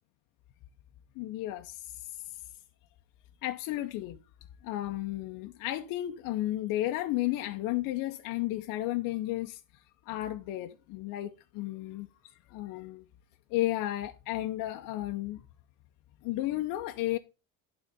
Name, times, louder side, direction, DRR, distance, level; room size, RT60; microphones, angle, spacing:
voice 1, 1.2-2.1 3.4-4.2 4.6-9.6 10.1-12.1 12.5-13.0 13.5-15.5 16.2-17.2, left 15 dB, 70° left, 0.7 m, -33 dB
11.5 x 3.9 x 5.2 m
cardioid pair, 140°, 34 cm